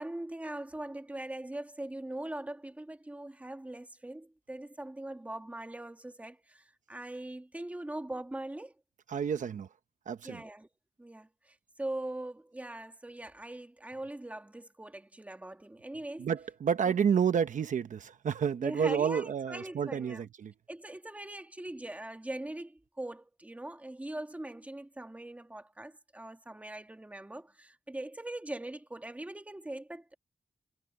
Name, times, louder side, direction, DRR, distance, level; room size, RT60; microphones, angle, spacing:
voice 1, 0.0-8.8 10.2-10.7 11.0-16.3 16.8-16.9 18.6-20.3 20.7-30.2, right 1 dB, 10° right, 1.7 m, -41 dB
voice 2, 9.1-9.7 10.1-10.4 16.2-20.5, right 7 dB, 80° right, 0.9 m, -30 dB
wide cardioid pair, 150°, 13 cm